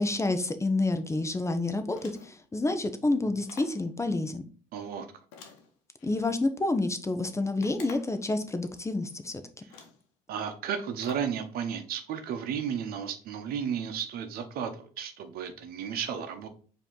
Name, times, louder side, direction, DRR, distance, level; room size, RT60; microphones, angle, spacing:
voice 1, 0.0-4.4 6.0-9.4, left 2 dB, 20° left, 9 dB, 0.7 m, -29 dB
sound 1, 1.9-2.5 3.5-3.9 5.3-6.3 7.6-8.2 9.1-9.2 9.7-10.1 11.0-11.4, left 5 dB, 85° left, 0.9 m, -49 dB
voice 2, 4.7-5.1 9.6-9.7 10.3-16.5, right 8 dB, 70° right, 8 dB, 0.8 m, -33 dB
4.9 x 2.9 x 3.7 m, 0.42 s
supercardioid pair, 70°, 16 cm